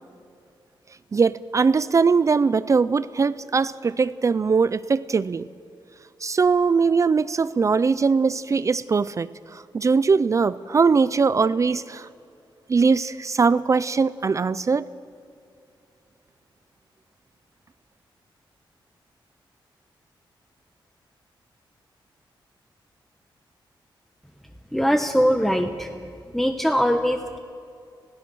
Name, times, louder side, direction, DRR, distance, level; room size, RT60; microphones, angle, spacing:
voice 1, 1.1-5.5 6.2-12.1 12.7-14.9, right 5 dB, 35° right, 15 dB, 0.5 m, -21 dB
voice 2, 24.7-25.9 26.3-27.4, equal, 5° left, 6 dB, 1.0 m, -21 dB
25.0 x 17.0 x 6.3 m, 2.4 s
wide cardioid pair, 110°, 9 cm